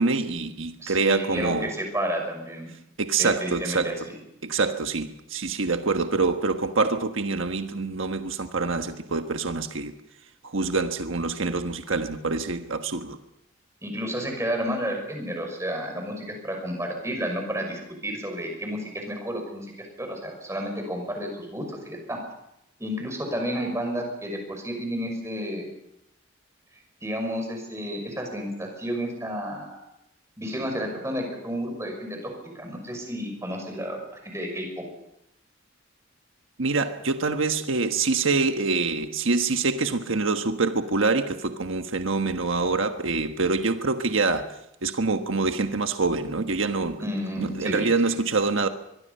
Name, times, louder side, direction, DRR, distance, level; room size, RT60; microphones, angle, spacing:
voice 1, 0.0-1.7 3.0-3.9 4.4-9.9 10.4-13.2 36.6-44.5 44.8-47.0 47.4-48.7, right 3 dB, 90° right, 1.4 m, -25 dB
voice 2, 0.8-2.7 3.2-3.9 13.8-22.2 22.8-25.7 27.0-29.8 30.4-34.8 47.0-48.2, equal, 15° right, 6.0 m, -31 dB
23.0 x 23.0 x 5.6 m
head